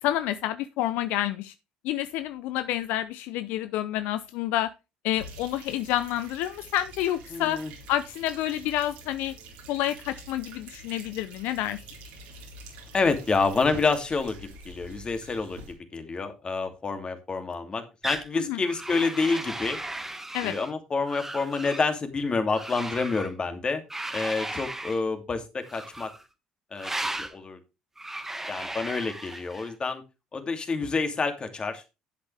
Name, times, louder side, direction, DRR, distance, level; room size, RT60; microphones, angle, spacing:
voice 1, 0.0-1.5 1.8-4.7 5.0-7.6 7.9-9.3 9.7-11.8 18.3-18.6 20.3-20.6, left 13 dB, 75° left, 13 dB, 0.6 m, -29 dB
sound 1, 5.1-15.7, right 2 dB, 85° right, 3.7 m, -46 dB
voice 2, 7.3-7.7 12.9-15.6 15.9-19.8 20.4-23.8 24.1-26.1 26.7-26.9 27.2-27.6 28.5-30.0 30.3-31.8, left 4 dB, 35° left, 7 dB, 2.6 m, -28 dB
sound 2, 18.0-18.3 18.7-20.7 21.1-21.9 22.5-23.3 23.9-25.0 25.7-26.2 26.8-27.3 28.0-29.7, right 2 dB, 10° right, 1.6 m, -36 dB
11.0 x 8.1 x 3.4 m, 0.26 s
supercardioid pair, 70°, 3 cm